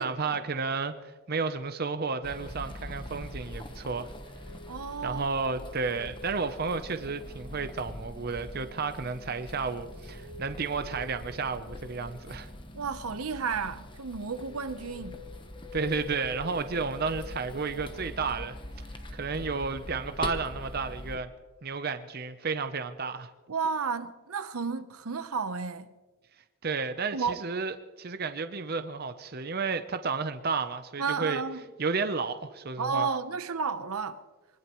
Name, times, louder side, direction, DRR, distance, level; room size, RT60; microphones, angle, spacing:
voice 1, 0.0-4.1 5.0-12.5 15.7-18.6 19.1-21.3 21.6-23.3 26.6-31.4 31.8-33.1, right 4 dB, 45° right, 0.7 m, -32 dB
sound 1, 2.2-21.2, left 1 dB, 20° left, 1.0 m, -43 dB
sound 2, 2.6-21.2, left 2 dB, 35° left, 3.3 m, -50 dB
voice 2, 4.7-5.4 12.7-15.2 23.5-25.9 27.1-27.4 31.0-31.6 32.8-34.2, right 5 dB, 80° right, 0.8 m, -32 dB
24.0 x 19.5 x 3.1 m
head